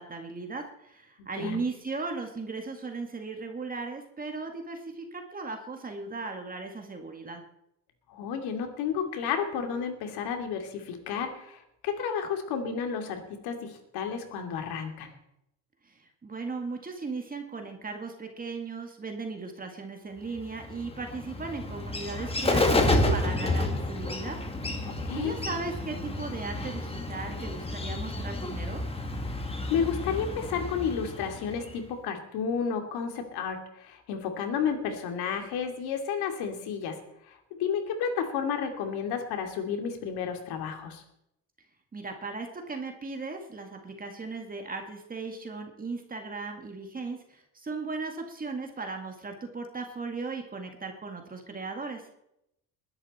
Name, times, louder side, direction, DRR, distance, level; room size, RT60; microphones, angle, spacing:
voice 1, 0.0-7.4 15.8-24.4 24.8-28.8 41.9-52.1, right 3 dB, 20° right, 4 dB, 2.0 m, -37 dB
voice 2, 1.2-1.6 8.1-15.1 24.8-25.3 29.7-36.9 37.3-41.0, left 7 dB, 85° left, 5 dB, 2.8 m, -32 dB
Bird, 20.4-31.9, left 2 dB, 15° left, 1.8 m, -30 dB
21.0 x 11.0 x 4.3 m, 0.79 s
cardioid pair, 130°, 38 cm